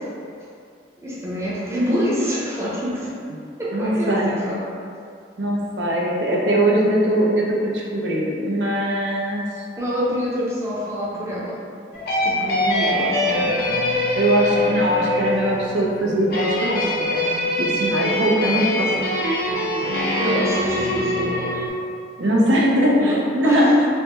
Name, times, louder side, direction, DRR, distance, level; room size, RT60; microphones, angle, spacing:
voice 1, 1.0-3.1 3.6-4.7 9.8-11.6 12.2-13.5 20.2-21.7 23.0-23.8, equal, 15° right, -7 dB, 0.6 m, -26 dB
voice 2, 3.7-4.3 5.4-9.4 14.1-17.1 17.6-18.9 22.2-23.7, right 1 dB, 80° right, -3 dB, 0.6 m, -21 dB
sound 1, 11.9-21.7, left 1 dB, 60° left, 0.5 m, -23 dB
3.2 x 2.2 x 2.9 m, 2.3 s
head